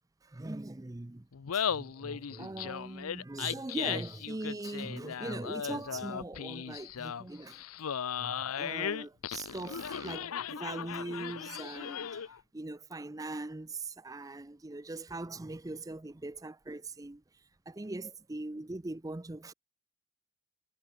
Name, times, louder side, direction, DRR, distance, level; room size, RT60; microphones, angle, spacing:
voice 1, 0.2-1.3 1.5-7.6 8.1-19.5, right 2 dB, 15° right, 0.5 m, -41 dB
Laughter, 1.3-12.4, left 8 dB, 90° left, 0.6 m, -37 dB
head